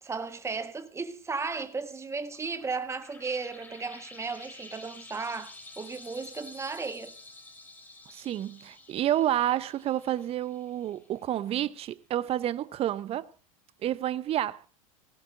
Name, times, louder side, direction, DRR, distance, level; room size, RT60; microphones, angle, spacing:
voice 1, 0.0-7.1, right 4 dB, 15° right, 1.4 m, -35 dB
sound 1, 2.2-11.3, left 2 dB, 10° left, 4.4 m, -50 dB
voice 2, 8.1-13.3 13.8-14.6, right 12 dB, 35° right, 0.8 m, -29 dB
18.0 x 16.5 x 2.6 m
hypercardioid pair, 90°, 18 cm